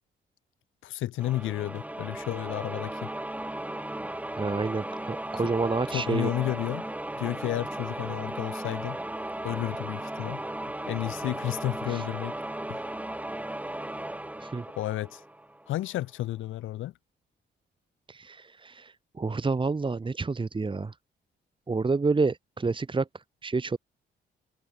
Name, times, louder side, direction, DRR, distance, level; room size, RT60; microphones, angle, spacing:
voice 1, 0.8-3.1 5.4-5.5 5.9-6.8 7.2-9.0 9.4-10.4 10.9-12.4 12.7-12.8 14.7-15.2 15.7-16.9, left 14 dB, 80° left, 1.3 m, -32 dB
sound 1, 1.2-15.8, right 1 dB, 5° right, 1.9 m, -36 dB
voice 2, 4.4-6.3 11.9-12.0 14.4-14.7 18.1-20.9 21.7-23.8, right 4 dB, 25° right, 2.2 m, -29 dB
cardioid pair, 90°, 20 cm